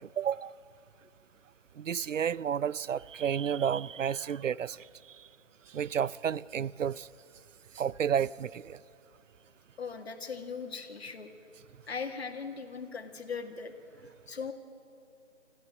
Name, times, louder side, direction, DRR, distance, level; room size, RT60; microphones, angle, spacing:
voice 1, 0.2-0.5 1.8-4.8 5.7-7.1 7.8-8.8, right 8 dB, 85° right, 0.6 m, -31 dB
voice 2, 9.8-11.3 11.9-14.5, left 5 dB, 55° left, 2.0 m, -39 dB
25.5 x 14.5 x 7.8 m
figure-of-eight pair, 165°, 37 cm